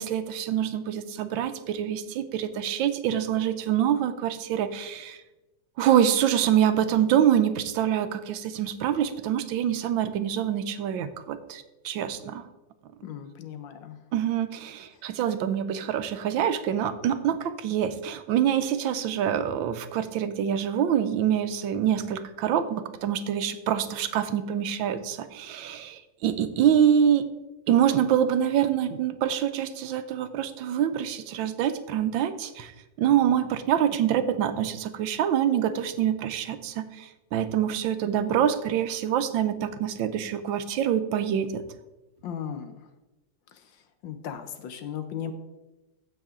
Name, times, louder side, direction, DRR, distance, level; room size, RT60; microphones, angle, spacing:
voice 1, 0.0-5.2 5.8-12.4 14.1-27.3 27.7-32.7 33.0-41.6, right 9 dB, 85° right, 11 dB, 1.5 m, -25 dB
voice 2, 13.0-14.0 42.2-42.8 44.0-45.3, left 8 dB, 75° left, 9 dB, 1.6 m, -36 dB
15.0 x 5.7 x 3.7 m, 1.0 s
omnidirectional pair, 2.1 m